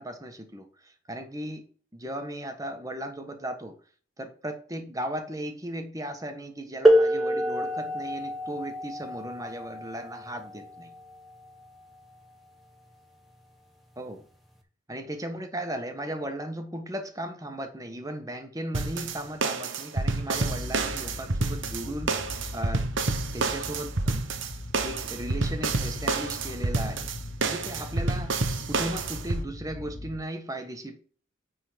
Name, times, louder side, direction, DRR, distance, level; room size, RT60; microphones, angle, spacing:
voice 1, 0.0-1.7 1.9-3.7 4.2-10.9 14.0-14.3 14.9-22.9 23.3-24.3 24.8-27.1 27.4-28.3 28.7-31.1, right 1 dB, 20° right, 6 dB, 1.3 m, -36 dB
sound 1, 6.9-12.3 13.3-13.4 14.3-14.5, right 1 dB, ahead, 1.5 m, -26 dB
sound 2, 18.7-29.4, right 3 dB, 85° right, 1.0 m, -29 dB
sound 3, 20.3-30.2, left 1 dB, 50° left, 0.9 m, -40 dB
9.6 x 3.9 x 5.1 m, 0.42 s
head